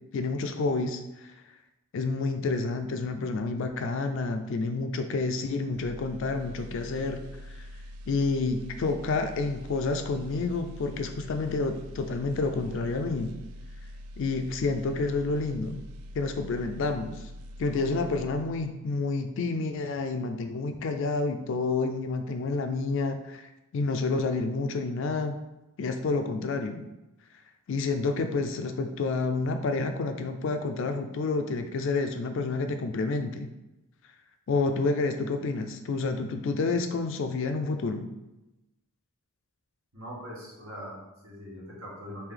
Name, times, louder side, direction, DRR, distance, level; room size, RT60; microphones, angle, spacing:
voice 1, 0.1-1.0 1.9-7.2 8.1-13.3 14.2-15.8 16.1-17.2 17.6-23.4 23.7-25.4 25.8-26.9 27.7-33.5 34.5-38.1, left 3 dB, 55° left, 7 dB, 0.3 m, -29 dB
sound 1, 5.7-18.9 19.2-19.4, equal, 85° right, 0.3 m, -44 dB
voice 2, 39.9-42.3, equal, 70° right, -5 dB, 1.3 m, -42 dB
3.3 x 2.6 x 3.7 m, 0.99 s
head